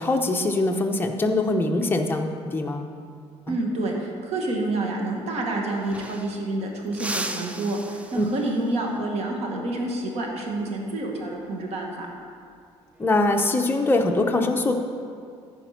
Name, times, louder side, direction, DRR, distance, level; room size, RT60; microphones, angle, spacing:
voice 1, 0.0-2.9 3.5-3.6 8.2-8.3 13.0-14.7, left 2 dB, 20° left, 3 dB, 0.9 m, -23 dB
voice 2, 3.5-12.1, right 2 dB, 65° right, 0 dB, 1.8 m, -28 dB
sound 1, 5.3-5.4 5.6-6.5 6.9-8.7 11.2-11.5 12.9-13.4, right 1 dB, 10° right, 0.6 m, -36 dB
14.5 x 5.1 x 5.8 m, 2.3 s
cardioid pair, 130°, 12 cm